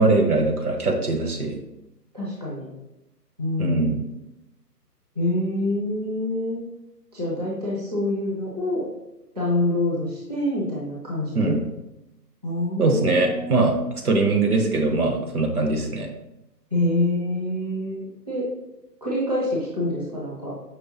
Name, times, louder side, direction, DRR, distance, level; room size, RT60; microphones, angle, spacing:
voice 1, 0.0-1.6 3.6-4.0 11.3-11.6 12.8-16.1, right 3 dB, 60° right, 3 dB, 0.9 m, -21 dB
voice 2, 2.1-2.7 3.4-4.0 5.2-6.6 7.1-8.8 9.4-11.6 12.4-13.9 16.7-18.5 19.0-20.5, left 1 dB, 25° right, -6 dB, 0.6 m, -26 dB
5.5 x 3.1 x 2.8 m, 0.93 s
figure-of-eight pair, 145°, 50 cm